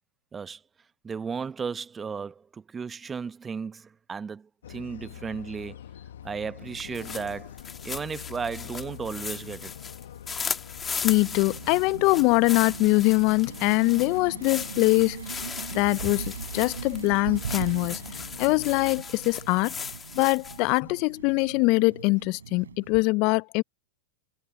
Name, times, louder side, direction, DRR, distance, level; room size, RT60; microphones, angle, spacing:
voice 1, 1.0-5.8 6.2-7.5 7.8-9.7, right 5 dB, 20° right, 1.0 m, -34 dB
sound 1, 4.6-19.0, left 10 dB, 75° left, 1.0 m, -45 dB
sound 2, 6.8-20.8, left 6 dB, 20° left, 1.9 m, -37 dB
voice 2, 11.0-15.2 15.7-18.0 18.4-19.7 20.2-23.6, left 26 dB, 50° left, 0.3 m, -23 dB
sound 3, 11.1-22.9, right 7 dB, 85° right, 4.0 m, -40 dB
hypercardioid pair, 100°, 0 cm